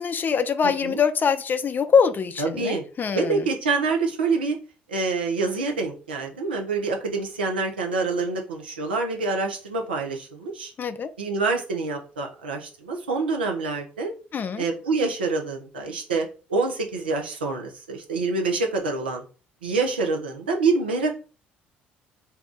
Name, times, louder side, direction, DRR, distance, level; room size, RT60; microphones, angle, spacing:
voice 1, 0.0-3.4 10.8-11.1 14.3-14.7, left 6 dB, 35° left, 0.5 m, -23 dB
voice 2, 0.6-1.0 2.4-2.9 3.1-4.6 4.9-10.7 11.2-14.1 14.6-19.2 19.6-21.2, right 3 dB, 85° right, 0.6 m, -26 dB
2.7 x 2.3 x 3.7 m
hypercardioid pair, 55°, 5 cm